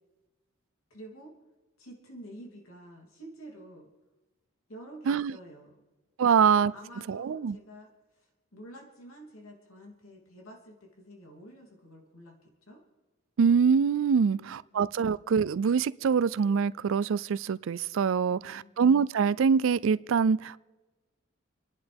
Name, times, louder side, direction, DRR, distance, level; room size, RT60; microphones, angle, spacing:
voice 1, 0.9-1.3 1.8-3.9 4.7-5.8 6.3-7.9 8.2-12.8 14.2-14.8 18.3-18.7, right 1 dB, 90° left, 3.1 m, -49 dB
voice 2, 6.2-6.7 7.1-7.6 13.4-20.6, right 6 dB, 70° right, 0.4 m, -24 dB
29.0 x 11.0 x 3.5 m
head